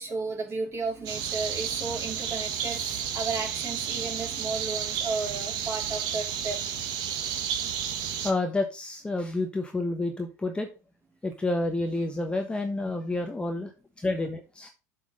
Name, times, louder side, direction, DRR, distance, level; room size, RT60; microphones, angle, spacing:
voice 1, 0.0-6.6, right 4 dB, 30° right, 1 dB, 3.4 m, -33 dB
sound 1, 1.1-8.3, right 8 dB, 50° right, 1.5 m, -32 dB
voice 2, 8.2-10.7 11.2-13.7 14.0-14.7, left 2 dB, 10° left, 4 dB, 1.2 m, -29 dB
7.3 x 5.7 x 5.2 m, 0.30 s
hypercardioid pair, 90°, 9 cm